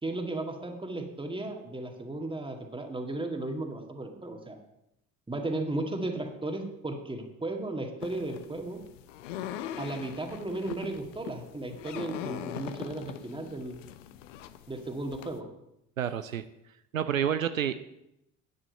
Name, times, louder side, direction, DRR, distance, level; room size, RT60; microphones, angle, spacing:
voice 1, 0.0-4.6 5.3-8.8 9.8-13.8 14.7-15.5, right 2 dB, 15° right, 3 dB, 2.0 m, -35 dB
sound 1, 8.0-15.4, left 11 dB, 65° left, 0.7 m, -42 dB
voice 2, 16.0-16.5 16.9-17.8, right 9 dB, 85° right, 11 dB, 0.5 m, -29 dB
9.6 x 8.3 x 6.7 m, 0.84 s
figure-of-eight pair, 55°, 39 cm